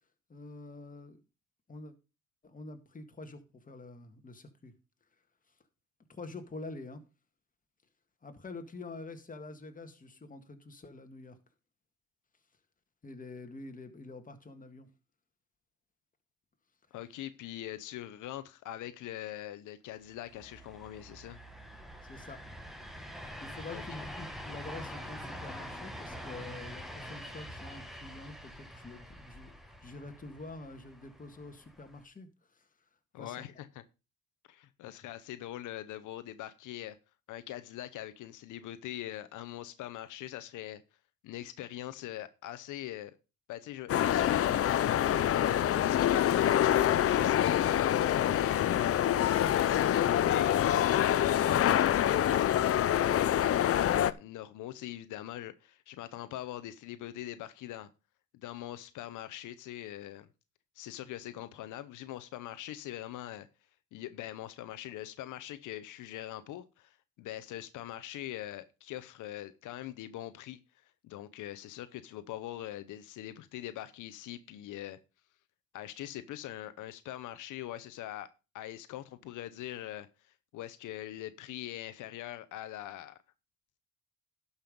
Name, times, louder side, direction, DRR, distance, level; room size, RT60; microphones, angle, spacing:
voice 1, 0.3-1.2 1.7-1.9 2.4-4.7 6.1-7.0 8.2-11.4 13.0-14.9 22.0-22.4 23.4-29.5 29.8-32.7 33.2-33.5 61.0-61.1, left 3 dB, 25° left, 1.8 m, -46 dB
voice 2, 16.9-21.4 23.7-24.0 33.1-33.8 34.5-37.0 37.3-40.8 41.2-43.1 43.5-48.8 49.2-52.7 53.0-57.9 58.3-60.3 60.8-63.5 63.9-70.6 71.0-75.0 75.7-78.3 78.5-83.2, left 13 dB, 85° left, 0.8 m, -42 dB
sound 1, 20.1-32.0, equal, ahead, 1.7 m, -45 dB
sound 2, 43.9-54.1, left 11 dB, 50° left, 0.6 m, -26 dB
11.5 x 5.6 x 5.1 m
cardioid pair, 90°, 30 cm